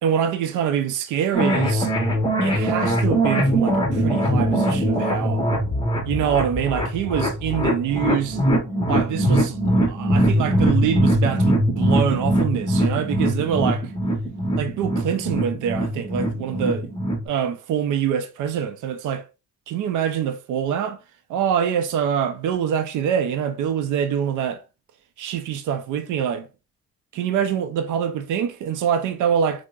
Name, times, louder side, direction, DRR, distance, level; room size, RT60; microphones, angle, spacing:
voice 1, 0.0-1.9 2.4-5.5 6.0-8.4 8.9-13.9 14.6-16.9 17.3-19.3 19.7-21.0 21.3-24.6 25.2-26.5 27.1-29.7, right 8 dB, 80° right, 0.5 m, -25 dB
sound 1, 1.3-17.3, right 1 dB, 15° left, 1.0 m, -22 dB
4.4 x 2.1 x 2.3 m
cardioid pair, 90°, 30 cm